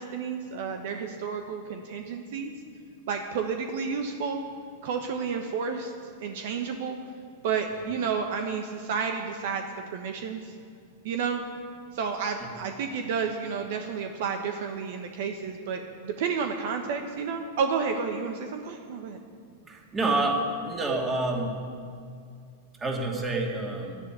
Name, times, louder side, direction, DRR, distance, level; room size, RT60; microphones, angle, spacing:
voice 1, 0.0-2.5 3.1-4.4 4.8-5.9 6.2-7.0 7.4-10.5 11.0-11.4 11.9-19.2, right 6 dB, 65° right, 5 dB, 1.2 m, -31 dB
voice 2, 19.7-21.5 22.8-24.0, right 2 dB, 20° right, 0 dB, 2.7 m, -28 dB
11.5 x 10.5 x 9.4 m, 2.3 s
hypercardioid pair, 115°, 0 cm